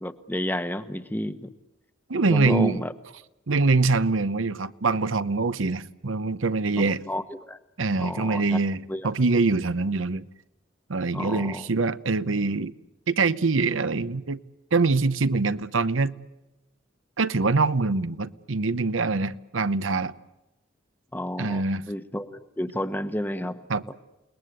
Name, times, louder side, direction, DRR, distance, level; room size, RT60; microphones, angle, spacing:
voice 1, 0.0-1.5 2.3-2.9 6.8-7.6 8.0-8.6 8.9-9.1 11.1-11.7 21.1-23.6, left 1 dB, 10° left, 1.0 m, -31 dB
voice 2, 2.1-2.8 3.5-7.0 7.8-10.2 10.9-12.7 13.1-14.4 14.7-16.1 17.2-20.1 21.4-21.8 23.7-23.8, right 3 dB, 90° right, 0.8 m, -24 dB
29.5 x 20.0 x 8.0 m
head